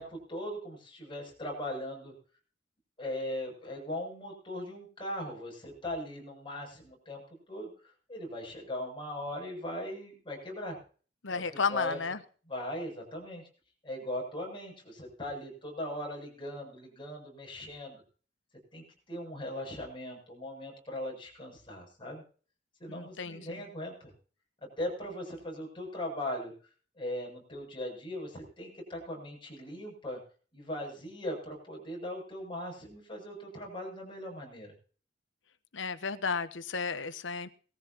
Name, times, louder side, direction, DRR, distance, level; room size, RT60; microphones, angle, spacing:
voice 1, 0.0-2.1 3.0-7.2 7.5-10.8 11.3-12.0 12.5-13.4 13.8-18.0 18.7-22.2 22.8-24.1 24.6-26.5 27.0-30.2 30.5-34.7, left 1 dB, 30° left, 0 dB, 7.7 m, -39 dB
voice 2, 11.2-12.2 22.9-23.6 35.7-37.5, left 5 dB, 85° left, 12 dB, 1.1 m, -33 dB
20.5 x 14.5 x 2.9 m, 0.41 s
head